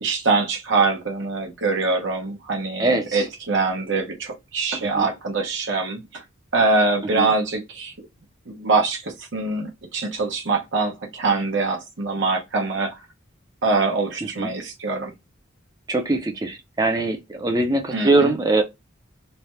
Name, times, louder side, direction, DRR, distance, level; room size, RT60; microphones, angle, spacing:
voice 1, 0.0-6.2 6.5-8.1 8.5-13.0 13.6-15.1 17.9-18.3, right 3 dB, 65° right, 0.9 m, -24 dB
voice 2, 2.8-3.2 4.9-5.1 7.1-7.3 14.2-14.5 15.9-18.6, right 2 dB, 20° right, 0.6 m, -22 dB
3.3 x 2.3 x 4.2 m
head